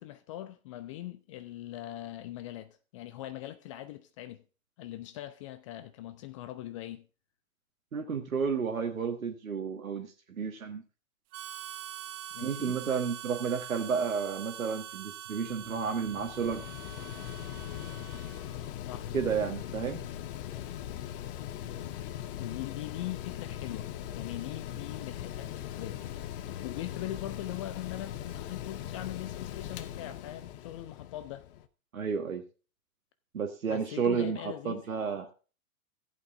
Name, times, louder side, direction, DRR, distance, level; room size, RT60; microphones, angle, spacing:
voice 1, 0.0-4.4 4.8-7.1 12.3-12.8 18.9-19.1 22.3-31.5 33.7-34.8, left 14 dB, 25° left, 0.4 m, -41 dB
voice 2, 7.9-10.8 12.4-16.6 19.1-20.1 31.9-32.4 33.3-35.3, right 6 dB, 75° right, 1.6 m, -32 dB
Harmonica, 11.3-18.6, right 12 dB, 30° right, 0.9 m, -44 dB
Mechanical fan, 15.4-31.7, left 11 dB, 40° left, 0.8 m, -40 dB
14.5 x 8.3 x 3.6 m
figure-of-eight pair, 105°, 42 cm